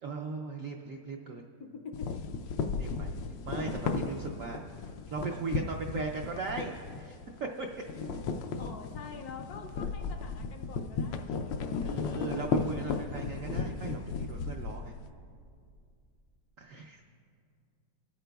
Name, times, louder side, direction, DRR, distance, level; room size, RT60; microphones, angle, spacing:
voice 1, 0.0-1.4 2.8-3.1 3.4-7.7 11.8-14.9 16.6-17.0, right 4 dB, 75° right, 1 dB, 0.7 m, -38 dB
voice 2, 1.6-2.2 8.4-11.9, left 5 dB, 70° left, 5 dB, 0.9 m, -46 dB
sound 1, 1.9-7.4 7.7-15.1, left 5 dB, 85° left, 1.3 m, -35 dB
20.5 x 8.7 x 2.3 m, 2.3 s
omnidirectional pair, 2.0 m